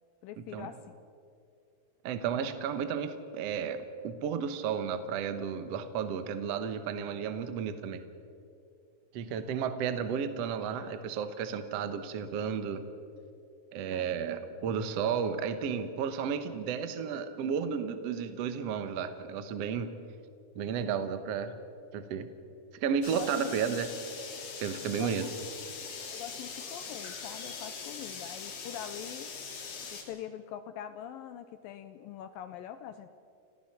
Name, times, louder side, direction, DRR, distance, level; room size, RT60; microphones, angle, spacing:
voice 1, 0.2-0.9 13.9-14.0 23.1-23.5 24.9-25.3 26.1-29.3 29.9-33.1, left 10 dB, 80° left, 11 dB, 2.1 m, -43 dB
voice 2, 2.0-8.0 9.1-12.8 13.7-19.9 20.5-21.5 21.9-22.3 22.8-23.9 24.6-25.3, right 7 dB, 75° right, 9 dB, 1.4 m, -33 dB
sound 1, 23.0-30.0, left 5 dB, 65° left, 4.2 m, -42 dB
30.0 x 15.0 x 5.9 m, 2.5 s
omnidirectional pair, 4.6 m